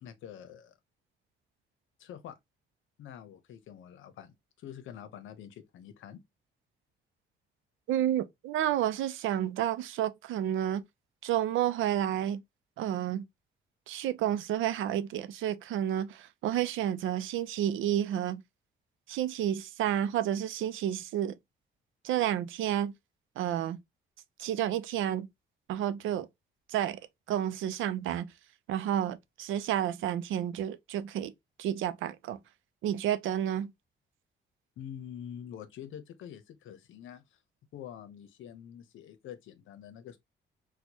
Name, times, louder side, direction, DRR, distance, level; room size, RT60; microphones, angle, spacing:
voice 1, 0.0-0.7 2.0-2.4 3.0-6.2 34.8-37.4 37.7-40.2, left 9 dB, 80° left, 0.8 m, -46 dB
voice 2, 7.9-10.8 11.2-12.4 12.8-13.2 13.9-18.4 19.1-21.3 22.0-22.9 23.4-23.8 24.4-25.3 25.7-26.3 26.7-27.0 27.3-28.3 28.7-31.3 31.6-32.4 32.8-33.7, right 11 dB, 80° right, 0.5 m, -30 dB
4.3 x 2.3 x 2.8 m
cardioid pair, 90°, 20 cm